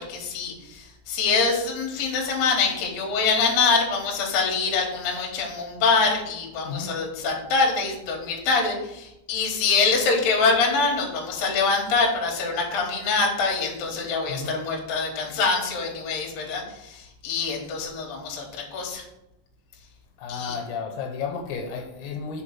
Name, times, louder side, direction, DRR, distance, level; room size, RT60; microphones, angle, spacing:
voice 1, 0.0-19.0 20.3-20.6, left 4 dB, 55° left, 0 dB, 2.1 m, -24 dB
voice 2, 20.2-22.4, left 5 dB, 80° left, 3 dB, 2.9 m, -32 dB
5.1 x 4.7 x 5.8 m, 0.87 s
omnidirectional pair, 4.6 m